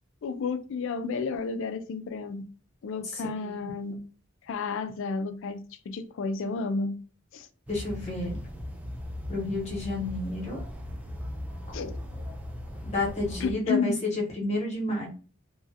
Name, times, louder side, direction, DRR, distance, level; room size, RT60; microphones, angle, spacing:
voice 1, 0.2-2.4 2.8-4.0 4.5-6.9 7.3-7.5 11.7-12.0 13.4-13.9, left 4 dB, 60° left, 0.3 m, -31 dB
voice 2, 3.1-3.6 7.7-8.4 9.3-10.6 12.8-15.1, left 2 dB, 35° left, 1.0 m, -30 dB
sound 1, 7.7-13.5, left 1 dB, 10° right, 0.4 m, -38 dB
3.0 x 2.4 x 2.7 m
head